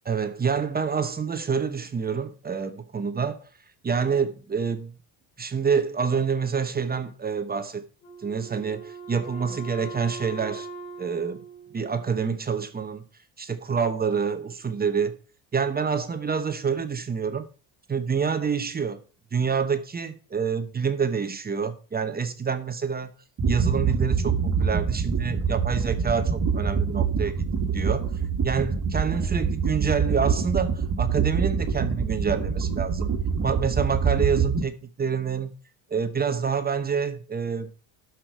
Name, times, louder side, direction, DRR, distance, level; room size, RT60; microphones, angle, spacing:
voice 1, 0.0-3.5 3.8-4.9 5.4-7.8 8.2-10.7 11.0-11.4 11.7-13.0 13.4-15.2 15.5-17.5 17.9-19.0 19.3-23.1 23.5-28.1 28.4-33.1 33.4-35.5 35.9-37.7, right 6 dB, 20° right, 0.9 m, -27 dB
Wind instrument woodwind instrument, 8.0-12.5, right 3 dB, 80° left, 4.5 m, -41 dB
sound 1, 23.4-34.6, right 6 dB, 40° right, 1.6 m, -25 dB
12.0 x 6.0 x 4.5 m
cardioid pair, 125°, 45 cm